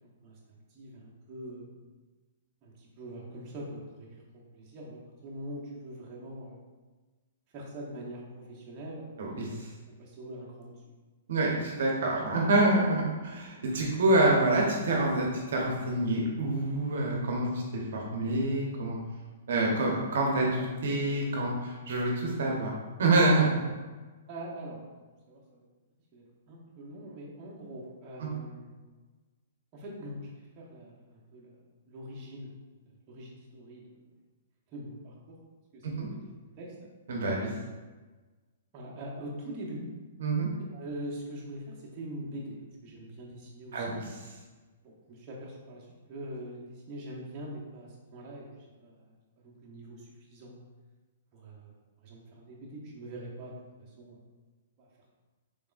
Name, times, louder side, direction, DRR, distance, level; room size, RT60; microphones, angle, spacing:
voice 1, 0.0-1.7 2.6-6.6 7.5-9.6 10.0-10.8 24.3-25.0 25.3-25.6 26.1-28.7 29.7-31.6 31.9-32.5 32.8-34.0 34.7-35.4 35.7-36.3 36.6-36.9 38.7-39.9 40.7-44.0 44.8-49.1 49.4-50.6 51.3-51.7 52.0-53.6 54.0-54.2 54.8-54.9, right 1 dB, 30° right, -4 dB, 0.9 m, -43 dB
voice 2, 9.2-9.7 11.3-19.0 19.5-22.7 23.0-23.6 28.2-28.3 35.8-36.1 37.1-37.5 40.2-40.5 43.7-43.9, right 2 dB, 70° right, -1 dB, 0.8 m, -27 dB
3.9 x 3.4 x 2.5 m, 1.3 s
hypercardioid pair, 140°, 0 cm